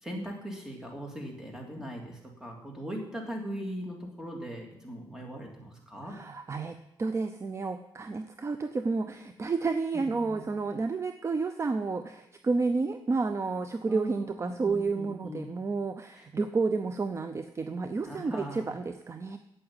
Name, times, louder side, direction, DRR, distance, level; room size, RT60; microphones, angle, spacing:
voice 1, 0.0-6.1 9.9-10.4 13.9-15.5 16.2-16.3 18.0-18.7, equal, 5° right, 0 dB, 3.1 m, -40 dB
voice 2, 6.0-19.4, right 4 dB, 30° right, 9 dB, 0.6 m, -31 dB
8.8 x 8.1 x 8.9 m, 0.82 s
cardioid pair, 105°, 9 cm